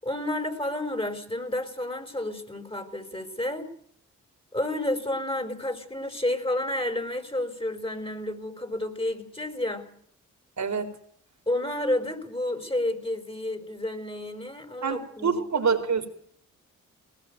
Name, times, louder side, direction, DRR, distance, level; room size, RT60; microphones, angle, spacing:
voice 1, 0.0-3.7 4.5-9.9 11.5-15.7, left 1 dB, 15° left, 8 dB, 5.1 m, -30 dB
voice 2, 10.6-10.9 14.8-16.1, right 6 dB, 55° right, 7 dB, 4.0 m, -26 dB
20.0 x 19.5 x 8.3 m, 0.63 s
supercardioid pair, 55°, 33 cm